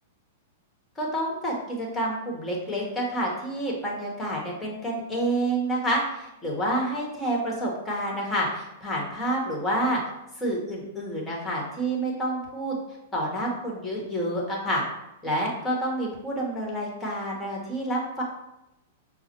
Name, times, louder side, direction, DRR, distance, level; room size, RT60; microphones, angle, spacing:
voice 1, 1.0-10.0 10.4-12.8 13.1-14.8 15.2-18.2, right 1 dB, 15° left, -3 dB, 1.3 m, -28 dB
6.1 x 2.1 x 3.0 m, 0.91 s
figure-of-eight pair, 105°, 0 cm